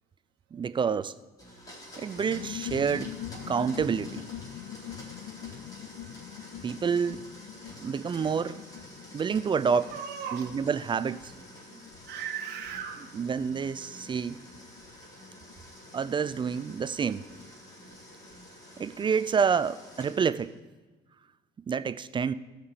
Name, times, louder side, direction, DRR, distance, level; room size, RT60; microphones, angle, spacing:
voice 1, 0.5-1.1 2.0-3.2 3.5-4.3 6.6-7.3 7.8-8.6 9.1-9.9 10.3-11.3 13.1-14.4 15.9-17.2 18.8-20.5 21.7-22.3, right 6 dB, 30° right, 15 dB, 0.4 m, -28 dB
Domestic sounds home sounds, 1.4-20.6, equal, 20° left, 4.2 m, -49 dB
sound 1, 2.1-18.4 18.7-18.8 19.0-19.4, left 13 dB, 85° left, 0.5 m, -45 dB
voice 2, 9.7-10.6 11.7-13.2, right 8 dB, 75° right, 2 dB, 1.3 m, -39 dB
13.5 x 5.9 x 6.5 m, 1.2 s
cardioid pair, 110°, 17 cm